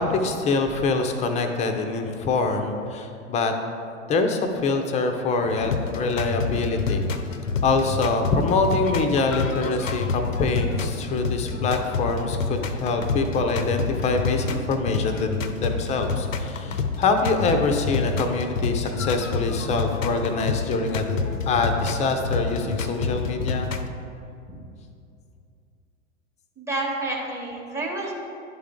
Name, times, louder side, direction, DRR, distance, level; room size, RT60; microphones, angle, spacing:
voice 1, 0.0-3.5 4.1-7.0 7.6-21.2 21.5-23.7, left 3 dB, 20° left, 5 dB, 0.5 m, -25 dB
sound 1, 5.4-23.9, left 4 dB, 85° left, 0.6 m, -28 dB
voice 2, 26.6-28.1, right 2 dB, 5° right, -2 dB, 1.0 m, -29 dB
11.0 x 3.7 x 3.5 m, 2.5 s
figure-of-eight pair, 95°, 38 cm